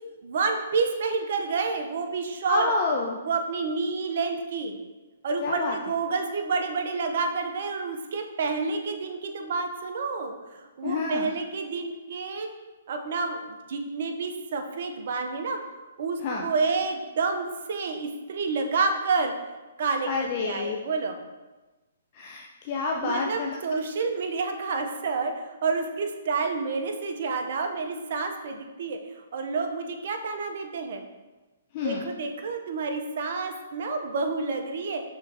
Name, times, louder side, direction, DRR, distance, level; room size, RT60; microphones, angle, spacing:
voice 1, 0.2-2.7 3.2-4.8 5.2-12.5 12.9-15.6 16.0-19.3 19.8-21.2 23.0-31.1 31.8-35.0, right 4 dB, 60° right, 5 dB, 0.6 m, -29 dB
voice 2, 2.5-3.2 5.4-5.8 10.8-11.3 16.2-16.5 20.1-20.8 22.1-23.6 31.7-32.1, left 4 dB, 40° left, 0 dB, 0.4 m, -28 dB
5.6 x 3.5 x 2.6 m, 1.2 s
hypercardioid pair, 130°, 0 cm